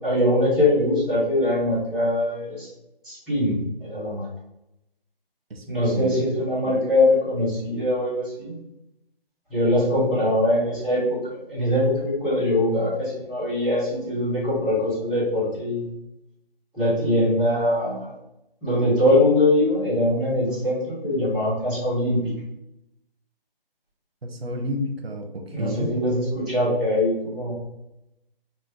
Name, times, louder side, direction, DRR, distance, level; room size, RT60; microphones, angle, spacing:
voice 1, 0.0-2.7 3.0-4.2 5.7-8.6 9.5-15.8 16.7-18.1 18.6-22.3 25.5-27.5, left 1 dB, ahead, -17 dB, 0.8 m, -22 dB
voice 2, 5.5-6.1 6.6-6.8 24.2-25.9, equal, 85° right, 4 dB, 0.7 m, -31 dB
3.0 x 2.2 x 3.3 m, 0.87 s
figure-of-eight pair, 150°, 30 cm